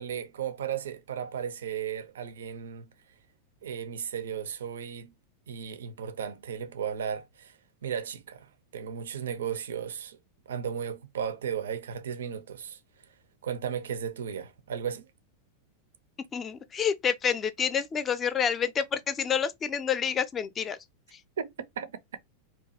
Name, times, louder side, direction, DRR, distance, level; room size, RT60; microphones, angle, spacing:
voice 1, 0.0-2.9 3.6-5.1 5.5-7.6 7.8-10.2 10.5-12.8 13.4-15.1 21.4-21.5 21.8-21.9, right 8 dB, 65° right, 0.4 m, -35 dB
voice 2, 16.3-20.8, left 7 dB, 25° left, 0.5 m, -28 dB
2.8 x 2.2 x 4.1 m
figure-of-eight pair, 90°, 0 cm